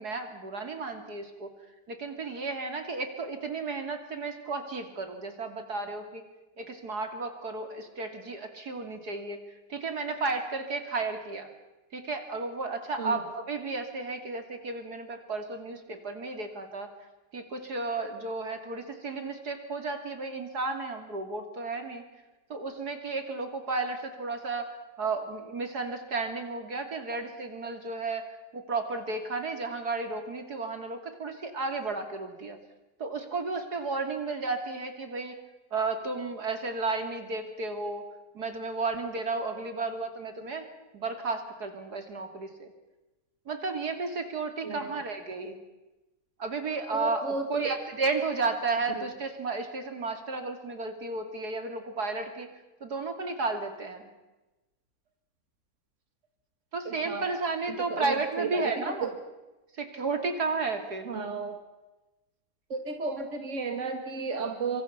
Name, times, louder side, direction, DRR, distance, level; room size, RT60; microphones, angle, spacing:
voice 1, 0.0-1.5 1.9-6.2 6.6-9.4 9.7-11.5 11.9-16.9 17.3-22.0 22.5-32.6 33.0-35.4 35.7-38.0 38.4-40.7 40.9-42.7 43.5-45.6 46.4-52.5 52.8-54.1 56.7-59.1 59.8-61.1, right 3 dB, 65° right, 6 dB, 3.4 m, -33 dB
voice 2, 44.6-45.0 46.9-47.7 49.0-49.1 56.9-57.3 57.9-59.1 61.1-61.6 62.7-64.8, right 4 dB, 45° right, 5 dB, 2.5 m, -33 dB
26.0 x 25.5 x 5.9 m, 1.1 s
omnidirectional pair, 1.8 m